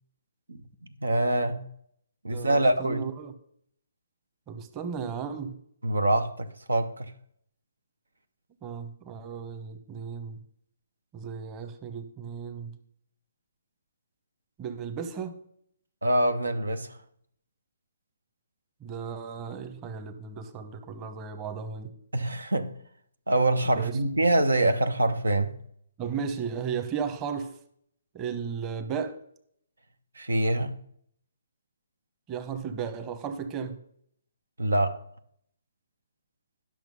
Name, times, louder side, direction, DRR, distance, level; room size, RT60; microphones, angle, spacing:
voice 1, 1.0-1.6 2.2-3.0 5.8-7.1 16.0-16.9 22.1-22.7 23.3-25.5 30.2-30.7 34.6-35.0, right 1 dB, 90° right, 0.9 m, -25 dB
voice 2, 2.3-3.3 4.5-5.6 8.6-10.4 11.1-12.7 14.6-15.4 18.8-21.9 23.7-24.0 26.0-27.5 28.1-29.2 32.3-33.8, right 6 dB, 25° right, 1.0 m, -35 dB
10.5 x 6.2 x 5.3 m
figure-of-eight pair, 140°, 0 cm